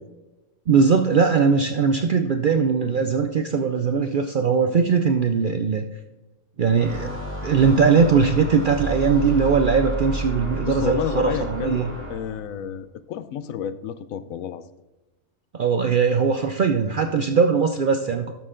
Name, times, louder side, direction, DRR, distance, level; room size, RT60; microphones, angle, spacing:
voice 1, 0.7-5.8 6.6-11.9 15.5-18.3, right 5 dB, 60° right, 7 dB, 0.5 m, -20 dB
sound 1, 6.7-12.5, right 1 dB, 10° right, 2.4 m, -31 dB
voice 2, 10.6-11.8 12.1-14.6, left 8 dB, 80° left, 14 dB, 1.0 m, -30 dB
12.5 x 6.4 x 3.8 m, 1.1 s
omnidirectional pair, 1.4 m